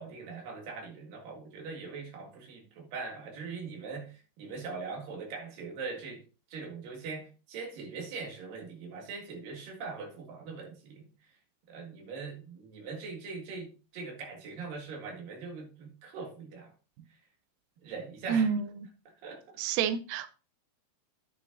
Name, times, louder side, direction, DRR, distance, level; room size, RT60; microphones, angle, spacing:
voice 1, 0.0-11.4 11.7-16.7 17.1-17.2 17.8-18.5 19.0-19.6, right 4 dB, 60° right, 3.4 m, -42 dB
voice 2, 18.3-18.7 19.6-20.3, right 7 dB, 90° right, 1.9 m, -28 dB
9.6 x 9.4 x 2.6 m
omnidirectional pair, 4.8 m